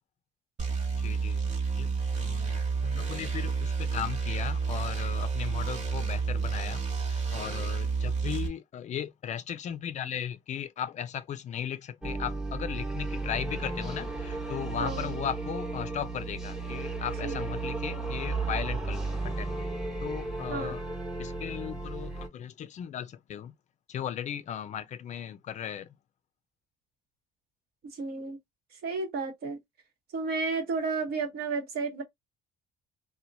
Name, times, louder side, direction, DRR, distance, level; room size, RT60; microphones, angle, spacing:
sound 1, 0.6-8.5, right 5 dB, 45° right, 0.9 m, -30 dB
voice 1, 0.9-1.4 1.8-19.5 20.0-20.8 21.2-23.5 23.9-25.9, left 9 dB, 45° left, 0.4 m, -37 dB
sound 2, 12.0-22.3, right 3 dB, ahead, 1.0 m, -34 dB
voice 2, 14.8-15.1 17.2-17.5 20.5-20.7 27.8-28.4 28.8-29.6 30.1-32.0, right 4 dB, 70° right, 1.2 m, -32 dB
2.8 x 2.1 x 2.6 m
cardioid pair, 110°, 17 cm